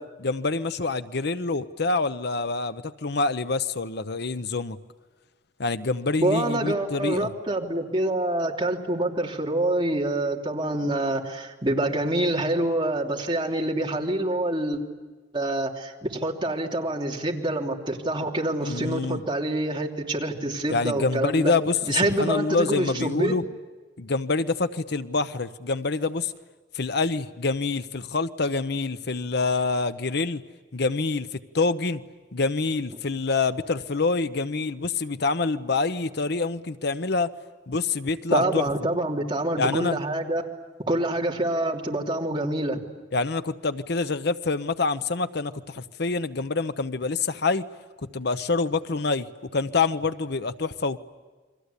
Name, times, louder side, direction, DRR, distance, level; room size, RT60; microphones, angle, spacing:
voice 1, 0.2-4.8 5.6-7.3 18.6-19.2 20.7-23.5 24.0-26.3 26.7-30.4 30.7-32.0 32.3-37.3 37.7-38.6 39.6-40.0 43.1-47.6 48.0-51.0, left 3 dB, 65° left, 12 dB, 0.9 m, -26 dB
voice 2, 6.2-14.8 15.3-21.5 21.9-23.4 38.3-40.4 40.9-42.8, right 1 dB, 25° right, 0 dB, 3.2 m, -26 dB
29.5 x 24.0 x 8.3 m, 1.3 s
head